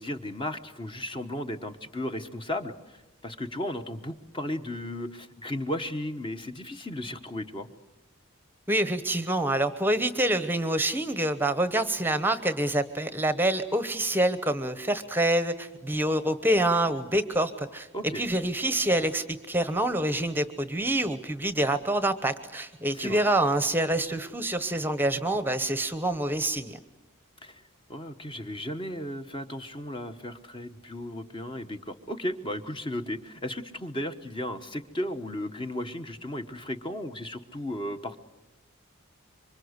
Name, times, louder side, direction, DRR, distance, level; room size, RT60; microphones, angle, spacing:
voice 1, 0.0-7.7 17.9-18.2 22.9-23.2 27.4-27.6 27.9-38.2, left 1 dB, 25° left, 7 dB, 1.1 m, -35 dB
voice 2, 8.7-17.9 18.1-26.8, right 1 dB, 10° right, 12 dB, 0.9 m, -26 dB
26.5 x 24.5 x 8.1 m, 0.99 s
head